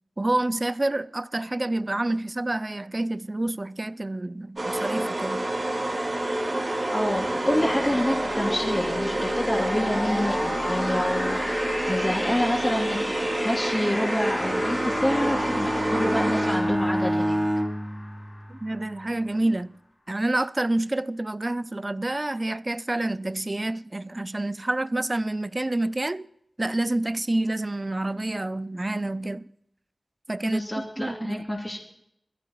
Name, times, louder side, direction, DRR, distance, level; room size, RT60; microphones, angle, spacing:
voice 1, 0.2-5.5 18.5-19.7 20.1-26.3 26.6-29.5 30.3-31.4, right 2 dB, 35° right, 0.4 m, -28 dB
sound 1, 4.6-16.9, right 1 dB, 50° right, 3.1 m, -28 dB
voice 2, 6.9-17.4 30.4-31.8, left 1 dB, 20° left, 2.8 m, -28 dB
sound 2, 7.1-18.8, left 1 dB, 45° left, 2.9 m, -34 dB
Bowed string instrument, 14.3-18.9, equal, 15° right, 0.8 m, -28 dB
21.5 x 15.5 x 3.1 m
wide cardioid pair, 70°, 0 cm